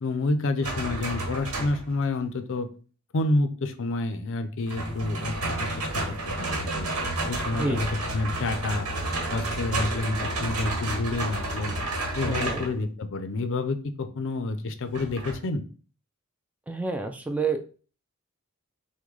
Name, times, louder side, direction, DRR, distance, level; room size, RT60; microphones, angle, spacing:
voice 1, 0.0-2.7 3.1-6.9 7.3-8.9 9.3-11.8 12.1-15.6, left 2 dB, 60° left, 10 dB, 0.5 m, -29 dB
sound 1, 0.6-2.0 4.7-12.7 14.9-15.4, right 2 dB, 85° right, 1.2 m, -31 dB
voice 2, 7.5-7.9 12.3-12.7 16.7-17.6, right 3 dB, 5° right, 5 dB, 0.3 m, -29 dB
6.0 x 2.2 x 3.8 m, 0.39 s
head